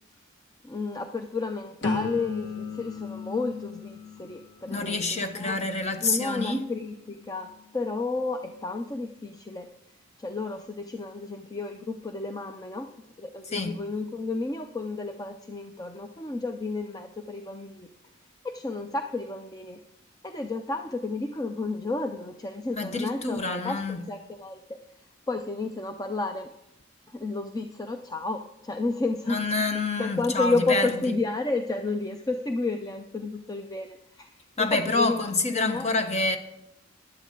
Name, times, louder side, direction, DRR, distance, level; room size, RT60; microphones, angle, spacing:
voice 1, 0.6-5.6 6.0-9.7 10.2-12.9 13.2-17.9 18.4-19.8 20.2-23.8 24.1-24.8 25.3-26.5 27.1-29.4 30.0-34.3 34.6-35.9, left 3 dB, 20° left, 0.6 m, -31 dB
sound 1, 1.8-7.7 8.2-8.6, left 4 dB, 65° left, 1.7 m, -37 dB
voice 2, 4.7-6.6 13.5-13.8 22.8-24.0 29.3-31.1 34.6-36.4, left 3 dB, 35° left, 1.2 m, -27 dB
16.0 x 11.0 x 3.9 m
head